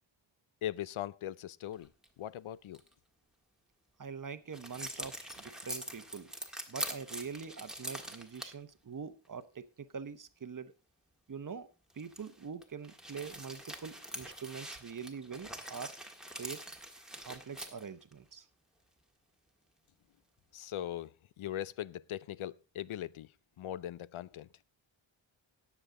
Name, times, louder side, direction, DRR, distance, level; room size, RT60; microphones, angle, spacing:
voice 1, 0.6-1.9 2.2-2.8 20.5-24.5, left 12 dB, 90° left, 0.6 m, -40 dB
sound 1, 1.7-2.1 2.7-2.9 4.5-8.5 9.2-9.3 11.9-18.1, right 1 dB, ahead, 1.6 m, -44 dB
voice 2, 4.0-6.3 6.7-10.7 11.3-11.7 11.9-16.0 16.3-16.6 17.2-18.5, right 6 dB, 40° right, 0.9 m, -44 dB
18.5 x 7.2 x 3.7 m
wide cardioid pair, 135°, 47 cm